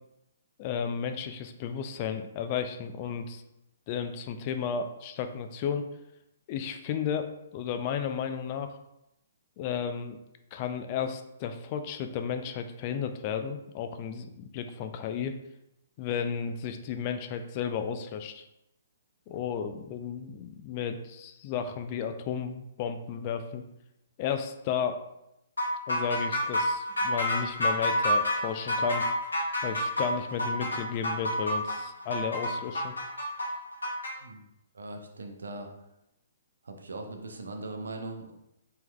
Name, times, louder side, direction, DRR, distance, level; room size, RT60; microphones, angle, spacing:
voice 1, 0.6-3.4 3.9-5.9 6.5-8.8 9.6-10.2 10.5-15.3 16.0-18.4 19.3-23.6 24.2-25.0 25.9-29.1 29.6-32.9, left 7 dB, 35° left, 7 dB, 0.3 m, -33 dB
sound 1, 25.6-34.1, left 1 dB, 75° left, 1.1 m, -29 dB
voice 2, 34.7-35.7 36.6-38.3, right 2 dB, 70° right, 4 dB, 0.6 m, -40 dB
4.2 x 3.5 x 2.2 m, 0.84 s
figure-of-eight pair, 125°, 0 cm